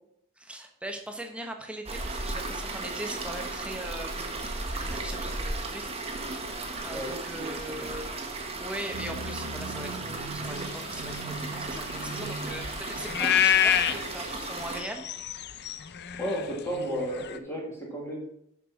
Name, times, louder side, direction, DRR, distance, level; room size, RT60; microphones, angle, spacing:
voice 1, 0.4-5.9 6.5-8.1 8.6-15.1, right 1 dB, 5° right, 3 dB, 1.1 m, -40 dB
sound 1, 1.9-14.8, right 2 dB, 25° right, 1.2 m, -35 dB
voice 2, 6.9-7.5 7.8-7.9 16.2-18.2, equal, 10° left, -3 dB, 2.1 m, -33 dB
sound 2, 8.9-13.5, right 3 dB, 85° right, 1.4 m, -41 dB
sound 3, 10.5-17.4, left 9 dB, 50° left, 0.5 m, -29 dB
6.8 x 6.1 x 5.8 m, 0.75 s
head